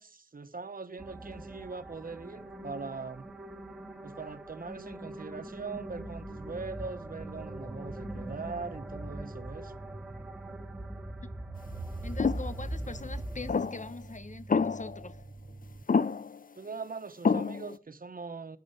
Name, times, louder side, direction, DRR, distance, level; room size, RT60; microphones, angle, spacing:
voice 1, 0.0-3.3 4.0-9.7 16.5-18.6, right 4 dB, 85° right, 1.1 m, -41 dB
sound 1, 1.0-13.5, right 1 dB, 5° right, 3.0 m, -41 dB
sound 2, 5.9-15.8, right 2 dB, 45° right, 1.2 m, -49 dB
voice 2, 12.0-15.2, left 3 dB, 60° left, 1.0 m, -42 dB
sound 3, 12.2-12.5 13.5-13.9 14.5-15.0 15.9-16.4 17.2-17.8, left 5 dB, 75° left, 0.6 m, -27 dB
12.0 x 10.5 x 7.9 m
wide cardioid pair, 50°, 14 cm